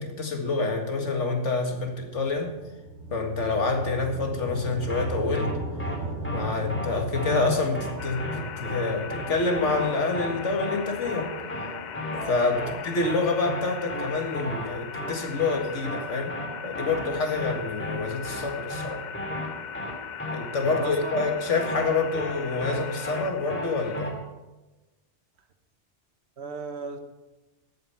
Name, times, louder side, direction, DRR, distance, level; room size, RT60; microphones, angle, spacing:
voice 1, 0.0-2.6 3.1-5.5 6.3-11.3 12.2-16.3 16.6-19.0 20.3-24.2, left 3 dB, 75° left, 3 dB, 2.2 m, -27 dB
sound 1, 2.1-12.1, right 1 dB, 85° right, 5.9 m, -37 dB
sound 2, 4.9-5.1 5.3-5.5 5.8-6.0 6.2-6.4 6.7-6.9 7.1-7.5 7.7-7.9 8.2-8.4 8.6-8.8 9.1-9.3 9.5-9.9 10.1-10.3 10.6-10.8 11.0-11.2 11.5-11.7 11.9-12.3 12.5-12.7 13.0-13.2 13.4-13.6 13.9-14.1 14.3-14.7 14.9-15.1 15.4-15.6 15.8-16.0 16.3-16.5 16.7-17.1 17.3-17.5 17.8-18.0 18.2-18.4 18.7-18.9 19.1-19.5 19.7-19.9 20.2-20.4 20.6-20.8 21.1-21.3 21.5-21.9 22.1-22.3 22.6-22.8 23.0-23.2 23.5-23.7 23.9-24.1, equal, 10° left, 2.3 m, -34 dB
sound 3, 8.0-24.0, left 7 dB, 55° left, 0.5 m, -39 dB
voice 2, 20.6-21.4 26.4-27.0, right 4 dB, 60° right, 7 dB, 1.5 m, -37 dB
13.0 x 8.9 x 5.8 m, 1.1 s
omnidirectional pair, 1.2 m